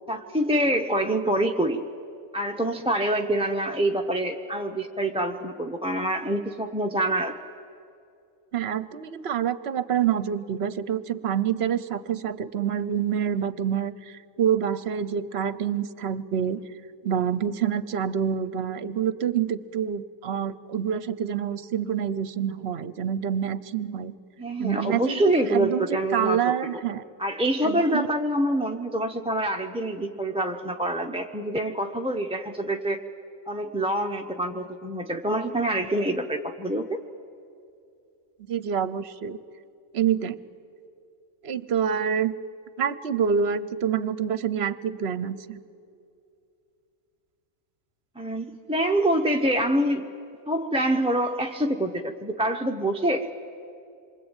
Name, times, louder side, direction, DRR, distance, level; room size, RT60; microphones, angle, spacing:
voice 1, 0.1-1.8 2.3-7.3 24.4-26.5 27.2-33.0 33.5-37.0 48.2-50.1 50.5-53.3, right 1 dB, 5° right, 2 dB, 0.8 m, -26 dB
voice 2, 8.5-16.6 17.0-24.1 24.6-25.9 26.1-27.0 27.6-28.1 38.5-39.4 39.9-40.4 41.4-42.3 42.8-45.6, right 8 dB, 55° right, 15 dB, 1.0 m, -27 dB
27.0 x 24.0 x 9.1 m, 2.5 s
omnidirectional pair, 1.4 m